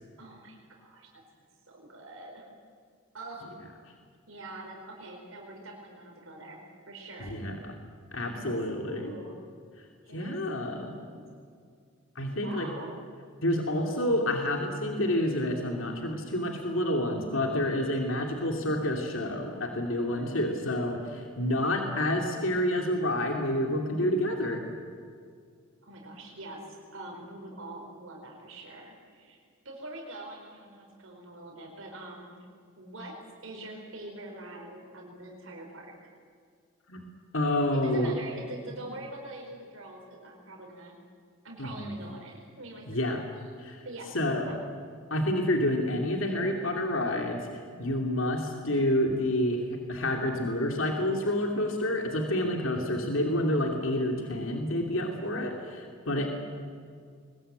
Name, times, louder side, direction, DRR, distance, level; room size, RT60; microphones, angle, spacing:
voice 1, 0.2-2.5 3.1-3.5 4.3-7.4 8.2-9.4 10.0-10.3 10.6-11.2 12.3-13.0 20.1-20.5 21.4-21.8 25.8-32.3 32.8-33.2 33.4-35.9 37.7-41.0 41.4-43.2 43.8-44.6 56.1-56.3, right 1 dB, 70° right, 0 dB, 4.6 m, -44 dB
voice 2, 7.2-7.7 8.1-9.1 10.1-11.0 12.2-12.7 13.4-24.7 36.9-37.1 37.3-38.1 41.6-41.9 42.9-43.2 43.6-43.8 44.1-44.6 45.1-56.3, left 1 dB, 70° left, 2 dB, 2.7 m, -29 dB
22.5 x 20.5 x 9.0 m, 2.2 s
head